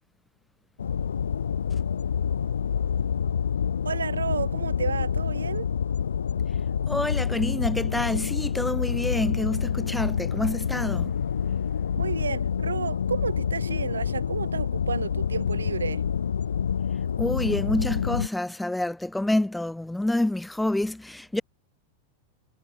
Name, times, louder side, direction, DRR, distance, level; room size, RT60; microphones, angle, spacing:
sound 1, 0.8-18.3, left 7 dB, 70° left, 1.4 m, -27 dB
voice 1, 3.8-5.7 11.9-16.0, right 6 dB, 70° right, 6.4 m, -31 dB
voice 2, 6.9-11.1 17.2-21.4, left 1 dB, 5° left, 3.7 m, -27 dB
figure-of-eight pair, 90°, 0 cm